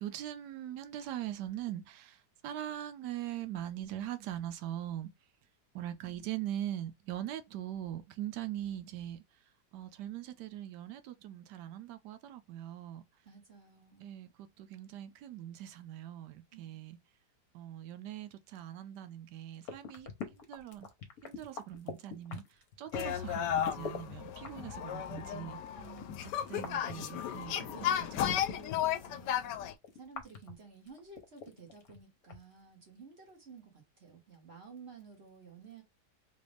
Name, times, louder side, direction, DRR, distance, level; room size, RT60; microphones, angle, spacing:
voice 1, 0.0-5.1 5.7-9.2 9.7-13.0 14.0-17.0 17.5-20.9 21.2-22.4 22.8-25.6 26.5-28.4, right 12 dB, 80° right, 1.2 m, -41 dB
voice 2, 13.2-14.1 16.5-16.8 25.7-26.3 26.7-26.8 27.5-29.6 29.9-35.8, right 5 dB, 40° right, 1.4 m, -53 dB
sound 1, 19.6-24.0 24.3-28.9 29.3-32.0 32.2-32.3, left 6 dB, 65° left, 1.4 m, -43 dB
sound 2, 22.9-29.7, left 10 dB, 90° left, 1.2 m, -34 dB
3.9 x 2.4 x 3.4 m
omnidirectional pair, 1.8 m